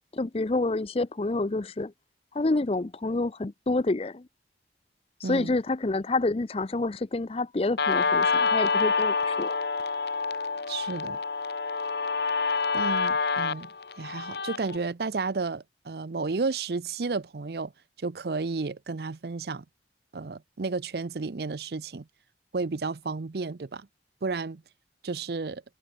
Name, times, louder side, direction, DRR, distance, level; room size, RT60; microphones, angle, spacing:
voice 1, 0.1-1.9 2.3-4.3 5.2-9.6, left 2 dB, 35° left, 0.5 m, -28 dB
Guitar, 7.8-14.8, left 4 dB, 65° left, 1.3 m, -27 dB
voice 2, 10.7-11.2 12.7-13.7 14.0-17.7 18.0-19.6 20.1-22.0 22.5-23.9 24.2-24.6 25.0-25.6, right 4 dB, 60° right, 0.6 m, -32 dB
head